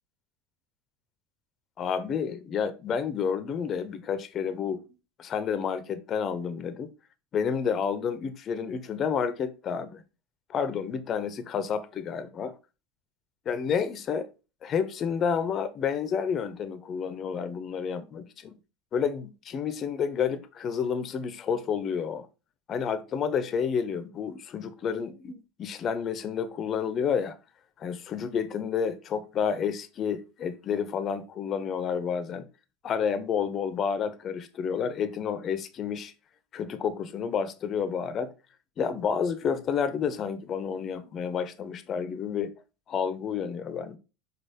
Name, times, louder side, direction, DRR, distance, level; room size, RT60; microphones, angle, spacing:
voice 1, 1.8-4.8 5.2-6.9 7.3-10.0 10.5-12.5 13.5-14.3 14.6-18.6 18.9-22.3 22.7-27.4 27.8-32.5 32.8-36.1 36.5-38.3 38.8-42.5 42.9-44.0, left 7 dB, 40° left, 0.7 m, -30 dB
5.5 x 4.0 x 4.2 m
hypercardioid pair, 95°, 0 cm